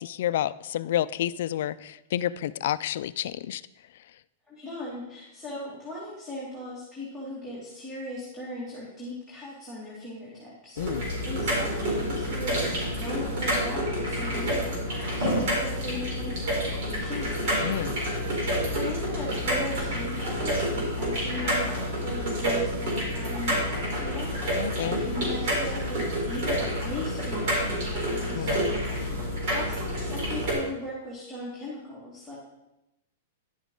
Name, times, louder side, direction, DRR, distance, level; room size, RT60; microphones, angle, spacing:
voice 1, 0.0-3.6 10.8-11.0 17.6-18.0 24.6-25.0 28.3-28.7, left 12 dB, 65° left, 16 dB, 0.4 m, -30 dB
voice 2, 4.5-10.8 11.2-17.6 18.7-28.6 29.5-32.4, left 1 dB, 10° right, -7 dB, 2.3 m, -38 dB
sound 1, 10.8-30.5, equal, 50° right, 3.9 m, -28 dB
11.0 x 7.2 x 3.8 m, 0.92 s
supercardioid pair, 155°, 0 cm